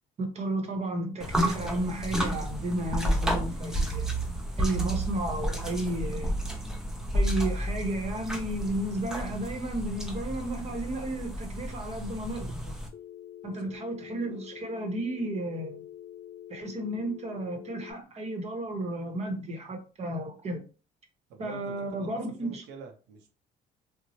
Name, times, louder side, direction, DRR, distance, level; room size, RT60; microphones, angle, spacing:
voice 1, 0.2-4.1 4.6-6.3 7.1-12.8 13.4-15.8 16.5-20.6 21.4-22.6, right 1 dB, 40° right, 0.8 m, -33 dB
sound 1, 1.2-12.9, equal, 5° right, 0.5 m, -31 dB
Telephone, 12.9-17.9, left 11 dB, 65° left, 0.5 m, -46 dB
voice 2, 13.4-13.8 21.3-23.4, right 5 dB, 90° right, 0.6 m, -47 dB
2.9 x 2.0 x 2.7 m
cardioid pair, 110°, 17 cm